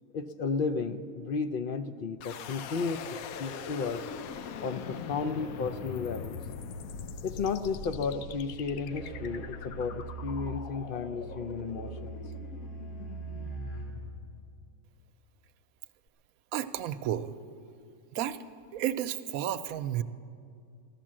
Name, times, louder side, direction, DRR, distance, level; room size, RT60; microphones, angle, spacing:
voice 1, 0.1-4.0 4.6-6.4 7.2-12.1, left 5 dB, 65° left, 10 dB, 0.5 m, -33 dB
sound 1, 2.2-15.1, left 6 dB, 80° left, 1.1 m, -42 dB
Musical instrument, 8.9-14.0, right 3 dB, 35° left, 3.6 m, -41 dB
voice 2, 16.5-17.3 18.1-18.4 18.7-20.0, right 11 dB, 85° right, 12 dB, 1.0 m, -32 dB
15.0 x 12.0 x 7.5 m, 2.3 s
omnidirectional pair, 1.5 m